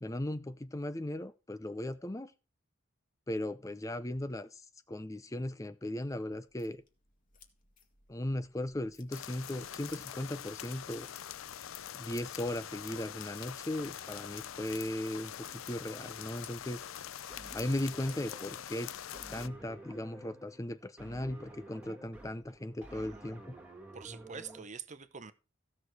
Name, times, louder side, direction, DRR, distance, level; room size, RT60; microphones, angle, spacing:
voice 1, 0.0-2.3 3.3-6.8 8.1-11.1 11.9-16.8 17.5-18.9 19.3-23.5, left 1 dB, 15° left, 0.5 m, -37 dB
sound 1, 6.3-19.3, left 6 dB, 40° left, 2.0 m, -62 dB
sound 2, 9.1-19.5, left 10 dB, 90° left, 0.5 m, -44 dB
sound 3, 17.3-24.6, right 1 dB, 10° right, 2.0 m, -51 dB
voice 2, 23.9-25.3, right 6 dB, 35° right, 0.9 m, -46 dB
15.5 x 6.6 x 4.6 m
head